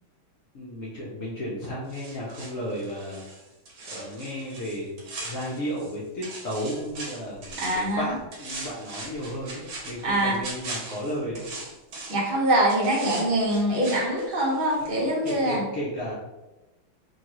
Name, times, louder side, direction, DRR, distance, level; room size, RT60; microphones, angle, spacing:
voice 1, 0.5-3.2 3.8-11.5 14.9-16.1, equal, 80° left, -6 dB, 0.7 m, -33 dB
sound 1, 1.9-5.9 6.2-8.0 8.3-12.3 12.7-15.0 15.3-15.4, right 2 dB, 60° right, 1.2 m, -40 dB
voice 2, 7.6-8.1 10.0-10.4 12.1-15.6, right 1 dB, 45° right, -5 dB, 0.7 m, -24 dB
3.9 x 2.4 x 2.9 m, 1.0 s
omnidirectional pair, 2.2 m